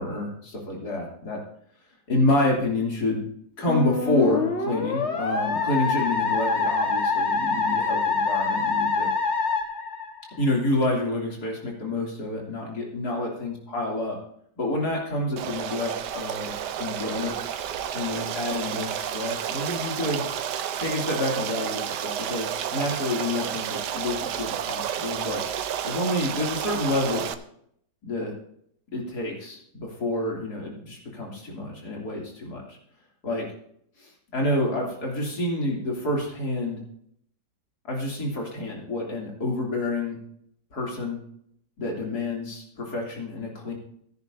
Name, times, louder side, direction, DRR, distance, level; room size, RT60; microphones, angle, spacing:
voice 1, 0.0-1.4 2.1-3.3 3.6-9.1 10.4-14.2 14.6-16.5 16.8-17.3 17.9-20.2 20.8-25.4 25.8-27.2 28.0-28.3 28.9-32.8 33.2-33.5 34.0-36.8 37.9-40.2 40.7-41.2 41.8-43.7, left 1 dB, 65° left, -2 dB, 3.5 m, -28 dB
Musical instrument, 3.7-10.5, left 4 dB, 40° left, 1.6 m, -25 dB
Stream, 15.4-27.3, right 9 dB, 75° right, 1.3 m, -31 dB
16.0 x 10.5 x 2.7 m, 0.68 s
omnidirectional pair, 1.9 m